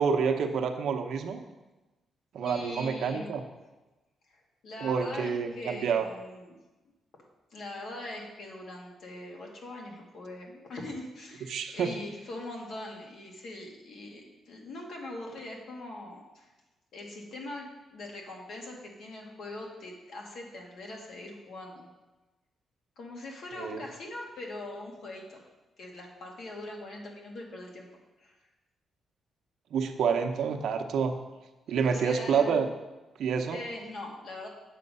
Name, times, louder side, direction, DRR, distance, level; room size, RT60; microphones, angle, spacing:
voice 1, 0.0-1.4 2.3-3.4 4.8-6.1 11.5-11.9 23.5-23.8 29.7-31.1 31.7-32.7 33.2-33.6, right 6 dB, 75° right, 6 dB, 0.8 m, -28 dB
voice 2, 2.4-3.5 4.3-6.6 7.5-16.5 16.9-21.9 23.0-25.4 25.8-27.9 28.2-28.4 31.8-32.6 33.5-34.5, left 2 dB, 60° left, 0 dB, 1.8 m, -42 dB
8.4 x 6.6 x 5.4 m, 1.1 s
wide cardioid pair, 170°, 0 cm